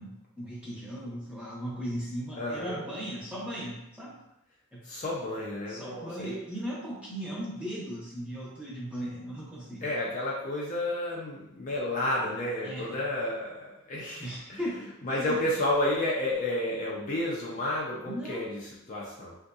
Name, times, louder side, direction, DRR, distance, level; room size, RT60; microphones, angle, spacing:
voice 1, 0.0-4.2 4.7-4.8 5.7-9.8 12.6-13.0 14.2-14.8 15.2-15.4 18.0-18.4, equal, 5° right, -7 dB, 0.8 m, -37 dB
voice 2, 2.4-2.8 4.8-6.4 9.8-19.4, left 1 dB, 35° left, -4 dB, 0.4 m, -31 dB
3.7 x 2.7 x 2.3 m, 0.88 s
head